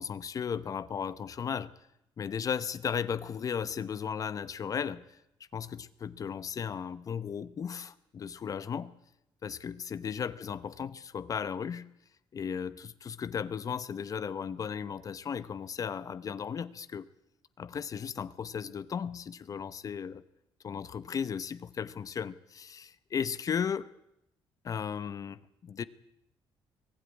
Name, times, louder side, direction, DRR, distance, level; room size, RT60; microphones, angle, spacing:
voice 1, 0.0-1.7 2.2-5.2 5.5-9.0 9.4-11.9 12.3-17.1 17.6-20.2 20.6-23.9 24.6-25.8, left 7 dB, 40° left, 15 dB, 0.8 m, -35 dB
23.5 x 16.5 x 9.7 m, 0.84 s
cardioid pair, 130°, 9 cm